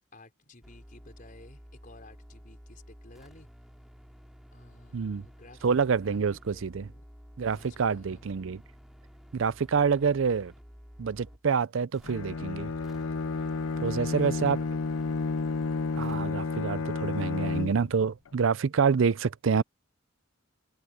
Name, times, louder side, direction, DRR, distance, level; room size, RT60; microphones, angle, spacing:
voice 1, 0.1-3.5 4.5-5.8 6.0-7.1 7.4-8.4 13.8-15.1, left 2 dB, 40° left, 4.8 m, -54 dB
sound 1, 0.6-11.5 11.9-16.2, equal, ahead, 4.0 m, -52 dB
voice 2, 4.9-5.2 5.6-6.9 7.4-8.6 9.3-10.5 11.0-12.7 13.8-14.6 16.0-19.6, right 5 dB, 70° right, 0.5 m, -27 dB
Bowed string instrument, 12.0-18.0, left 4 dB, 85° left, 0.6 m, -31 dB
head